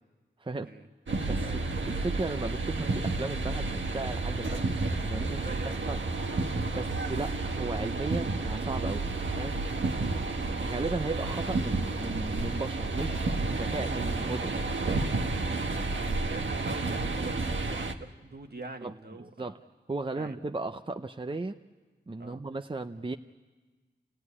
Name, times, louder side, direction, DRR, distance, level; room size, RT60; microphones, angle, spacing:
voice 1, 0.4-0.7 1.3-6.0 6.7-9.0 9.4-9.5 10.6-15.2 18.8-18.9 19.4-19.6 19.9-21.6 22.1-23.2, right 3 dB, 25° right, 7 dB, 0.7 m, -36 dB
sound 1, 1.1-17.9, right 3 dB, 80° right, 1.4 m, -31 dB
voice 2, 5.1-6.0 6.7-6.9 9.9-10.1 15.4-19.5 20.2-20.4 22.2-22.4, right 3 dB, 60° right, 4 dB, 1.8 m, -44 dB
29.0 x 16.0 x 9.8 m, 1.3 s
wide cardioid pair, 60°, 19 cm